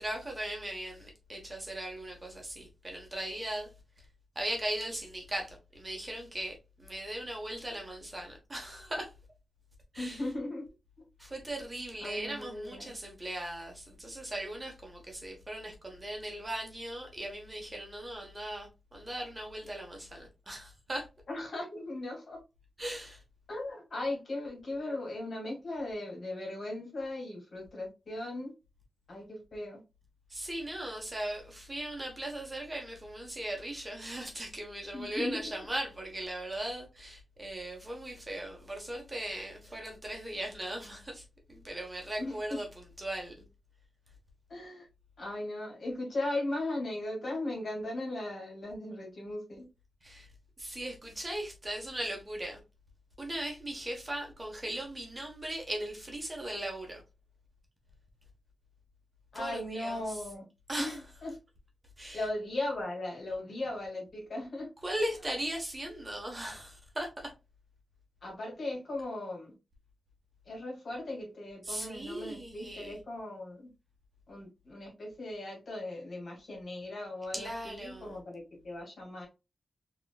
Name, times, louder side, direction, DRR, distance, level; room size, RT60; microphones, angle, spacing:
voice 1, 0.0-3.7 4.3-9.1 9.9-10.3 11.2-21.1 22.8-23.2 30.3-43.3 50.0-50.3 50.6-52.6 53.2-57.0 59.3-60.2 60.7-61.1 62.0-62.3 64.8-67.3 71.6-73.0 77.3-78.2, right 1 dB, 20° right, 1.1 m, -38 dB
voice 2, 10.0-10.6 12.0-12.9 21.3-22.4 23.5-28.5 29.1-29.8 34.9-35.4 42.2-42.6 44.5-44.9 45.2-49.6 59.3-60.4 60.8-61.3 62.1-64.7 68.2-69.5 70.5-73.7 74.3-79.3, left 2 dB, 60° left, 2.0 m, -37 dB
3.7 x 3.0 x 2.3 m
wide cardioid pair, 105°, 0 cm